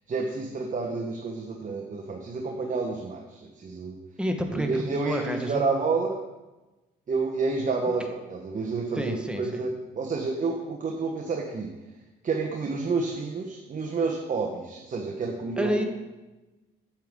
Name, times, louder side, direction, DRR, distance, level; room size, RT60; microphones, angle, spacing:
voice 1, 0.1-4.0 4.6-6.2 7.1-11.7 12.2-15.8, right 4 dB, 40° right, 1 dB, 1.1 m, -29 dB
voice 2, 4.2-5.7 8.9-9.7 15.6-15.8, equal, 5° right, 4 dB, 1.1 m, -29 dB
8.7 x 7.9 x 3.6 m, 1.1 s
cardioid pair, 90°, 20 cm